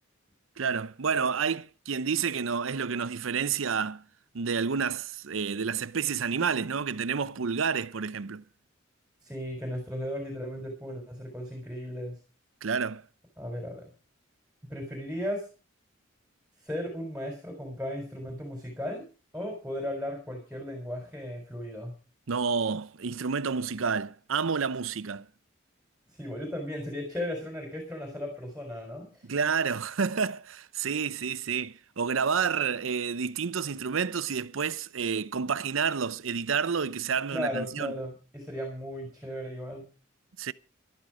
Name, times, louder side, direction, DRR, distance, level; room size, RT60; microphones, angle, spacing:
voice 1, 0.6-4.0 4.3-8.4 12.6-13.0 22.3-25.3 29.2-37.9 40.4-40.5, right 6 dB, 80° right, 0.7 m, -29 dB
voice 2, 9.2-12.2 13.4-13.9 14.6-15.5 16.6-19.0 19.3-21.9 26.1-29.2 37.3-39.9, equal, 5° right, 4.1 m, -36 dB
14.0 x 12.0 x 4.9 m
head